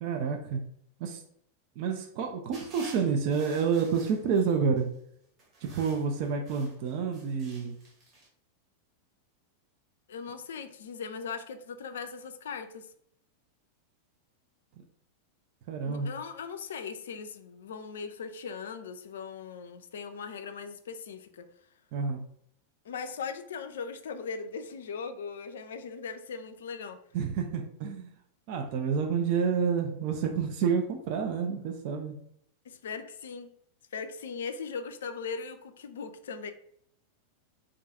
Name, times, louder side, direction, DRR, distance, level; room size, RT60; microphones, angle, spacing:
voice 1, 0.0-0.6 1.0-1.2 1.8-4.9 5.6-7.8 15.7-16.1 21.9-22.2 27.1-28.1 28.5-32.2, right 6 dB, 45° right, 0.4 m, -29 dB
sound 1, 2.5-4.8 5.4-8.3, right 2 dB, 30° right, 0.9 m, -51 dB
voice 2, 10.1-12.9 15.8-21.5 22.9-27.0 32.7-33.5 33.9-36.5, left 5 dB, 60° left, 0.3 m, -39 dB
2.4 x 2.3 x 3.9 m
figure-of-eight pair, 90°, 0 cm